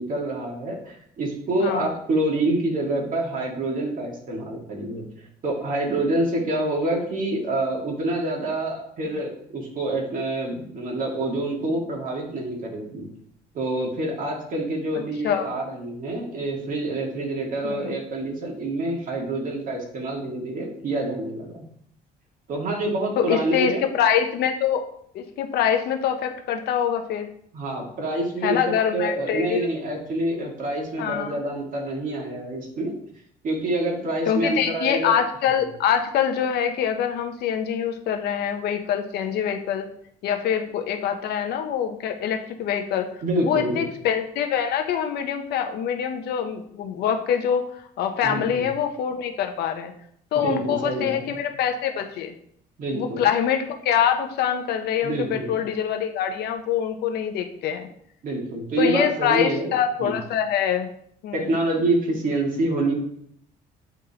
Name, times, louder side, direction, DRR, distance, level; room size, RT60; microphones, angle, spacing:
voice 1, 0.0-5.0 5.4-13.1 13.5-21.6 22.5-23.8 27.5-32.9 33.4-35.1 43.2-43.8 48.2-48.6 50.4-51.4 52.8-53.2 55.0-55.6 58.2-59.7 60.0-60.2 61.3-63.0, right 1 dB, 50° right, -1 dB, 1.9 m, -27 dB
voice 2, 17.6-17.9 23.2-24.8 25.1-27.3 28.4-29.7 31.0-31.4 34.3-39.9 40.2-43.1 43.4-47.6 48.0-49.9 50.3-52.3 52.9-57.9 58.8-60.9 61.2-61.5, left 8 dB, 75° left, 6 dB, 0.8 m, -24 dB
9.1 x 3.6 x 2.9 m, 0.69 s
cardioid pair, 110°, 17 cm